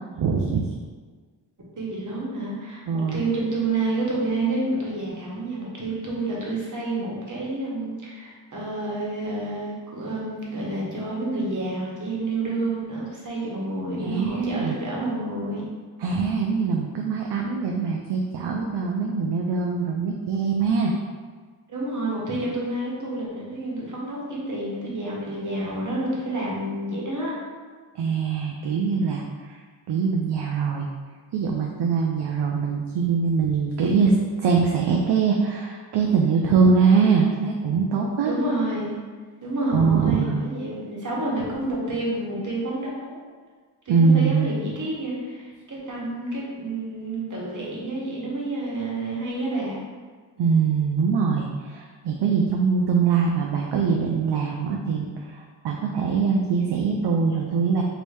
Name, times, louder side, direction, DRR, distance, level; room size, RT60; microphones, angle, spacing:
voice 1, 0.2-0.6 2.9-3.2 14.0-14.8 16.0-20.9 28.0-29.6 29.9-30.9 31.3-38.3 39.7-40.4 43.9-44.5 50.4-57.8, right 5 dB, 65° right, 0 dB, 0.5 m, -23 dB
voice 2, 1.8-15.6 21.7-27.3 38.2-39.0 39.4-43.2 43.8-49.8, right 2 dB, 40° right, -4 dB, 1.1 m, -29 dB
3.0 x 2.7 x 3.3 m, 1.5 s
cardioid pair, 55°, 45 cm